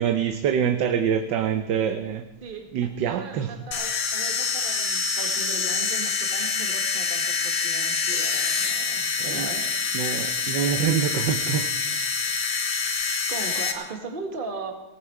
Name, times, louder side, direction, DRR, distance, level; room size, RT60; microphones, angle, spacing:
voice 1, 0.0-2.2 2.7-3.5 8.1-8.2 9.3-9.5 9.9-12.0, right 8 dB, 70° right, 8 dB, 1.4 m, -25 dB
voice 2, 2.4-10.3 12.1-12.4 13.3-14.7, right 4 dB, 25° right, 3 dB, 1.8 m, -38 dB
sound 1, 3.7-13.7, left 5 dB, 70° left, 2.1 m, -26 dB
18.0 x 15.5 x 4.7 m, 0.97 s
omnidirectional pair, 2.1 m